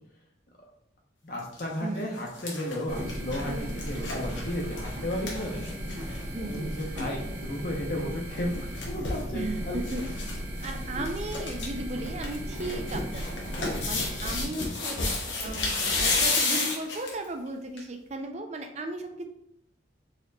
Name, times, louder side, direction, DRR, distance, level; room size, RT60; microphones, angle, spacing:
voice 1, 1.2-5.6 6.3-9.8 14.2-14.3, left 1 dB, 50° left, -1 dB, 0.7 m, -34 dB
sound 1, 1.3-1.6 2.0-6.2 6.5-6.6 6.8-7.1 8.3-9.2 9.8-10.3 10.6-10.7 11.0-11.7 12.0-17.2 17.8-17.9, left 3 dB, 80° left, 0.9 m, -31 dB
sound 2, 2.9-14.4, equal, 55° right, 1.2 m, -36 dB
voice 2, 6.3-6.8 9.3-10.3 10.6-15.0 15.4-19.3, right 2 dB, 35° right, 5 dB, 0.4 m, -36 dB
4.1 x 2.9 x 2.6 m, 0.76 s
head